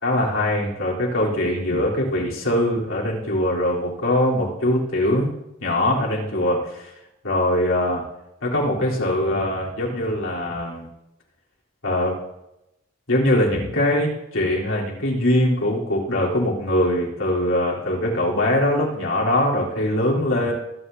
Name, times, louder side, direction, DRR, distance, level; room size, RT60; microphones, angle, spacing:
voice 1, 0.0-5.3 5.6-6.9 7.2-8.0 8.4-10.9 11.8-12.1 13.1-20.5, left 1 dB, 75° left, -4 dB, 3.4 m, -22 dB
24.5 x 9.0 x 2.7 m, 0.86 s
head